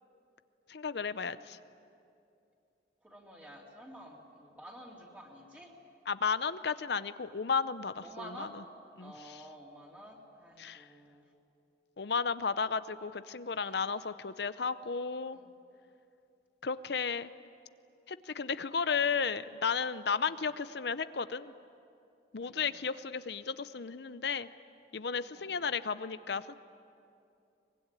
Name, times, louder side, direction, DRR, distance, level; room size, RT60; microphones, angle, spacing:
voice 1, 0.7-1.6 6.1-8.5 9.0-9.4 10.6-10.9 12.0-15.4 16.6-17.3 18.1-21.5 22.3-24.5 24.9-26.6, left 5 dB, 60° left, 13 dB, 0.6 m, -33 dB
voice 2, 3.0-5.7 8.0-8.5 9.0-11.2 13.5-13.8 15.3-15.4 20.3-20.4 22.4-22.8 25.3-25.5, right 1 dB, 10° right, -3 dB, 3.2 m, -50 dB
23.5 x 21.5 x 9.9 m, 2.6 s
head